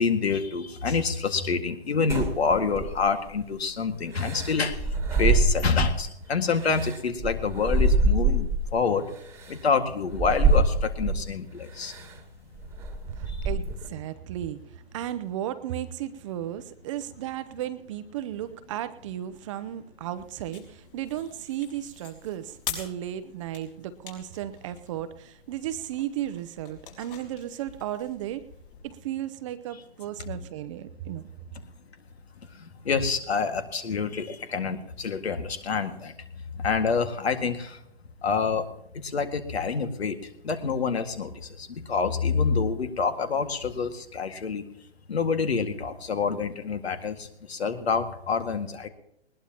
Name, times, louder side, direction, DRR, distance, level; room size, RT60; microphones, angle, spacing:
voice 1, 0.0-4.8 5.1-9.1 9.5-11.9 32.9-36.1 36.6-37.8 38.2-38.6 39.1-40.2 40.4-41.3 41.6-44.6 45.1-48.9, left 5 dB, 75° left, 8 dB, 2.0 m, -27 dB
sound 1, 2.1-3.3 4.1-6.1 6.5-8.7 9.4-9.5 10.1-11.3 11.8-12.1 12.6-13.9, right 2 dB, 10° right, 1.6 m, -25 dB
voice 2, 13.2-14.6 14.9-28.4 28.8-31.3, right 12 dB, 30° right, 13 dB, 0.7 m, -34 dB
sound 2, 20.0-28.8, left 8 dB, 55° left, 5.6 m, -44 dB
20.5 x 20.0 x 3.0 m, 0.77 s
hypercardioid pair, 140°, 32 cm